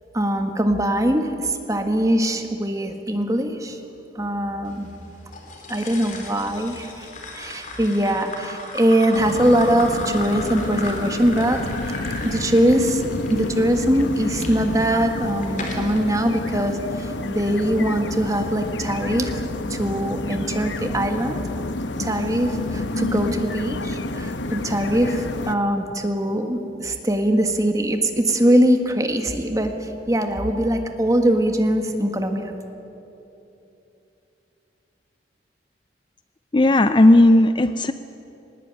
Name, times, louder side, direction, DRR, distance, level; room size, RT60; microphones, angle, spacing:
voice 1, 0.1-3.8 4.2-4.9 5.7-7.1 7.3-11.6 12.2-19.4 19.7-21.4 22.0-32.5, right 1 dB, 20° right, 5 dB, 1.6 m, -22 dB
sound 1, 5.3-14.5 15.1-16.0, left 3 dB, 45° left, 3.5 m, -35 dB
sound 2, 9.1-25.6, left 2 dB, 75° left, 1.0 m, -29 dB
voice 2, 36.5-37.9, left 1 dB, 25° left, 11 dB, 0.5 m, -14 dB
20.0 x 19.5 x 9.0 m, 2.9 s
head